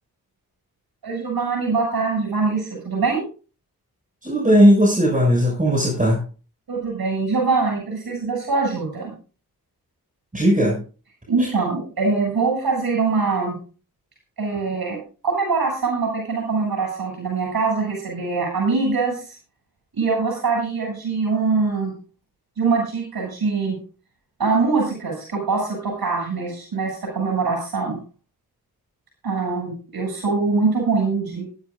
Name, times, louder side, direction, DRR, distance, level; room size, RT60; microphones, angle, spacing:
voice 1, 1.0-3.2 6.7-9.1 11.3-13.6 14.4-15.0 15.2-19.3 19.9-21.9 22.6-23.8 24.4-28.0 29.2-31.4, right 4 dB, 70° right, -1 dB, 7.8 m, -23 dB
voice 2, 4.2-6.2 10.3-10.8 11.4-11.5, equal, 20° right, -2 dB, 6.5 m, -17 dB
20.0 x 12.5 x 2.6 m, 0.37 s
cardioid pair, 65°, 38 cm